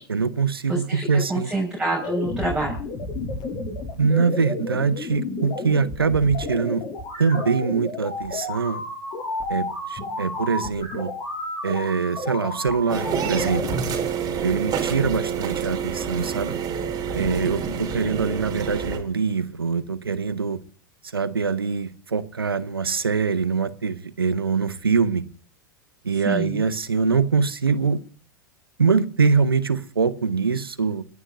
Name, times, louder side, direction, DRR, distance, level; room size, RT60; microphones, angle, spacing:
voice 1, 0.1-1.5 4.0-6.8 7.2-8.8 9.5-11.1 11.6-13.8 14.4-16.5 17.1-20.6 21.1-25.2 26.0-28.0 28.8-31.0, right 5 dB, 90° right, 15 dB, 0.9 m, -23 dB
voice 2, 0.7-2.7 26.2-26.6, right 2 dB, 5° right, -4 dB, 5.2 m, -27 dB
sound 1, 2.0-13.8, left 2 dB, 40° left, 5.7 m, -31 dB
sound 2, 12.9-19.0, right 6 dB, 35° right, 3.8 m, -27 dB
29.5 x 11.0 x 2.6 m, 0.42 s
figure-of-eight pair, 90°, 12 cm